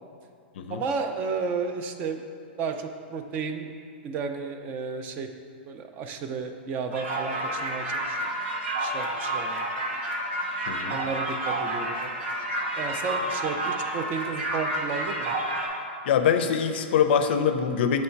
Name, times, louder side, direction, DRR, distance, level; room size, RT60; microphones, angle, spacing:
voice 1, 0.7-2.2 2.6-3.8 4.0-5.3 5.7-8.2 8.8-9.6 10.9-12.1 12.8-15.3, right 5 dB, 30° right, 6 dB, 0.3 m, -32 dB
sound 1, 6.9-15.7, right 1 dB, 90° right, 1.4 m, -30 dB
voice 2, 10.7-11.0 16.1-18.0, left 7 dB, 60° left, 8 dB, 0.4 m, -23 dB
6.9 x 3.1 x 4.5 m, 2.3 s
hypercardioid pair, 150°, 6 cm